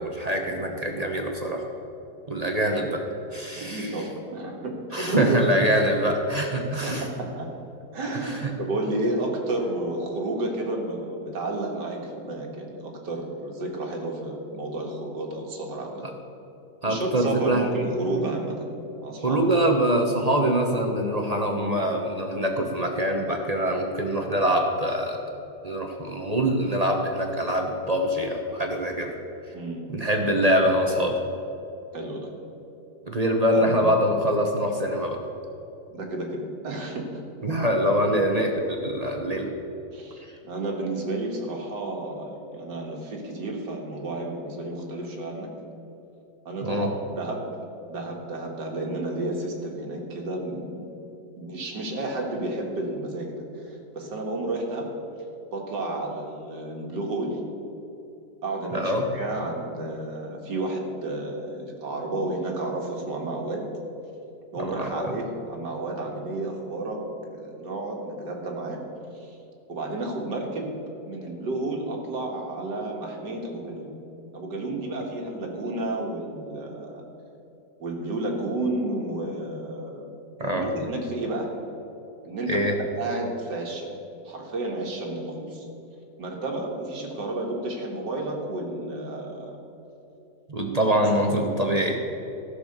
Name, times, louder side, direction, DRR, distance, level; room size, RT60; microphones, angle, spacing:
voice 1, 0.0-1.6 2.3-3.0 3.3-4.0 4.9-7.0 8.1-8.5 16.8-17.7 19.2-25.2 25.6-29.1 29.9-31.2 33.1-35.2 37.4-39.5 46.6-46.9 58.7-59.1 64.6-65.1 80.4-80.7 82.5-82.7 90.5-92.0, equal, 30° right, 2 dB, 0.8 m, -24 dB
voice 2, 3.5-5.6 6.8-7.5 7.9-16.0 16.8-18.7 19.0-19.4 29.5-29.8 31.9-32.3 33.5-33.9 35.9-37.2 39.9-45.5 46.5-46.9 47.2-47.5 47.9-50.9 51.4-54.9 55.5-57.4 58.4-63.7 64.5-68.9 69.1-69.4 69.7-70.7 71.1-73.9 74.3-77.0 77.8-80.1 80.4-81.5 82.2-82.6 83.0-83.9 84.2-85.7 86.2-89.6 90.9-91.2, right 2 dB, 85° right, 1 dB, 2.2 m, -31 dB
14.0 x 6.6 x 6.7 m, 2.9 s
omnidirectional pair, 1.8 m